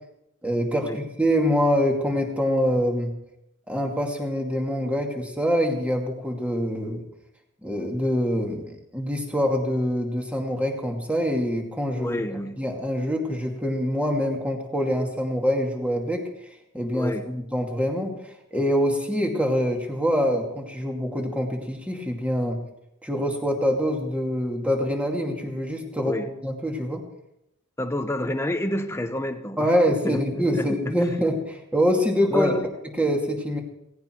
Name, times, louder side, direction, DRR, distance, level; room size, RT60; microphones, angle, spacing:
voice 1, 0.4-3.1 3.7-7.0 7.6-12.2 12.6-16.2 16.7-22.6 23.0-26.2 26.4-27.0 29.6-32.6 33.0-33.6, equal, 5° right, 1 dB, 2.4 m, -25 dB
voice 2, 12.0-12.6 16.9-17.3 26.0-26.3 27.8-29.7 30.0-30.8 32.3-32.6, left 1 dB, 10° left, 7 dB, 1.0 m, -28 dB
17.5 x 17.0 x 4.6 m, 0.81 s
head